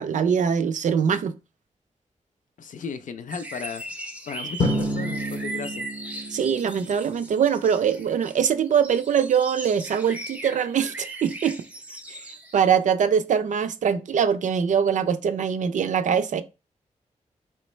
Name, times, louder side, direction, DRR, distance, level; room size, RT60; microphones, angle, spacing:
voice 1, 0.0-1.3 6.3-11.6 12.5-16.4, right 7 dB, 75° right, 0.4 m, -23 dB
voice 2, 2.6-3.8 4.3-5.9, left 5 dB, 85° left, 0.5 m, -35 dB
sound 1, 3.3-12.8 13.3-13.4, right 1 dB, 10° right, 0.5 m, -38 dB
Drum, 4.6-7.2, equal, 40° left, 0.6 m, -29 dB
4.4 x 3.1 x 3.1 m
wide cardioid pair, 180°, 13 cm